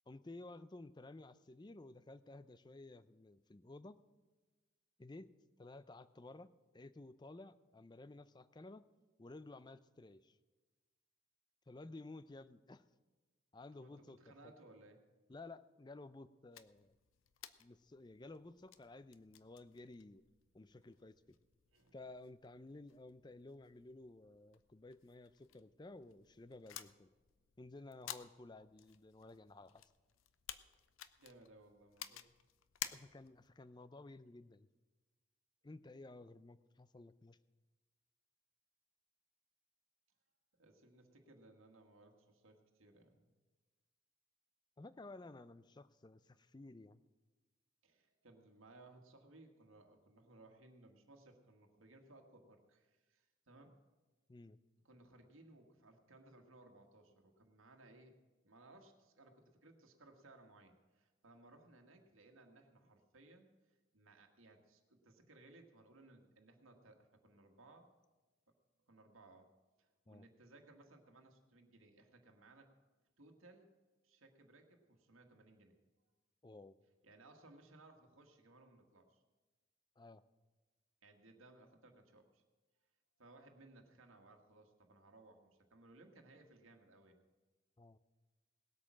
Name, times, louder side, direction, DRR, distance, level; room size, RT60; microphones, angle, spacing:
voice 1, 0.1-4.0 5.0-5.3 5.6-8.9 9.2-10.4 11.7-12.8 13.5-14.5 15.3-16.9 17.6-20.2 20.5-21.4 21.9-27.1 27.6-29.9 32.9-34.7 35.6-37.4 44.8-47.0 54.3-54.6 70.1-70.3 76.4-76.8 80.0-80.2 87.8-88.0, left 2 dB, 20° left, 15 dB, 0.4 m, -54 dB
voice 2, 13.7-15.0 21.7-22.0 31.2-32.3 40.6-43.3 47.8-53.8 54.8-58.2 58.4-67.9 68.9-69.5 69.8-72.7 73.2-73.7 74.0-75.8 77.0-79.2 81.0-82.4 83.2-87.2, right 2 dB, 85° right, 3 dB, 1.7 m, -62 dB
sound 1, 16.5-33.5, left 11 dB, 85° left, 0.6 m, -54 dB
18.5 x 8.5 x 6.2 m, 1.2 s
head